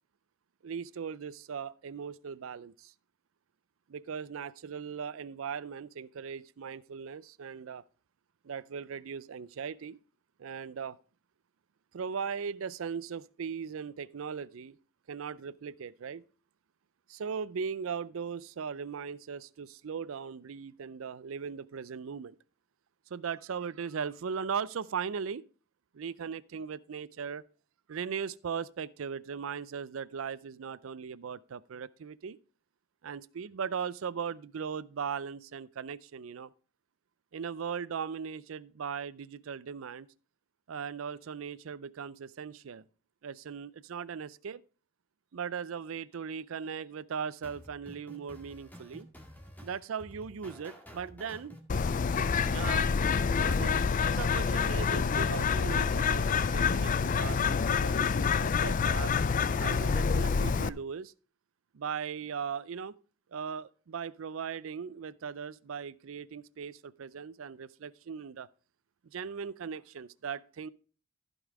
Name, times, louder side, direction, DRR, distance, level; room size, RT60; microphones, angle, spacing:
voice 1, 0.6-2.9 3.9-7.8 8.4-10.0 10.4-11.0 11.9-14.8 15.1-16.2 17.1-22.4 23.1-25.4 25.9-27.4 27.9-32.4 33.0-36.5 37.3-40.1 40.7-42.8 43.2-44.6 45.3-49.1 49.6-51.6 52.4-52.9 53.4-59.2 59.6-61.1 61.7-62.9 63.3-68.5 69.0-70.7, right 6 dB, 80° right, 0.5 m, -38 dB
sound 1, 47.4-54.1, equal, 10° left, 2.0 m, -51 dB
Bird, 51.7-60.7, left 5 dB, 40° left, 0.4 m, -27 dB
15.0 x 5.4 x 4.7 m
head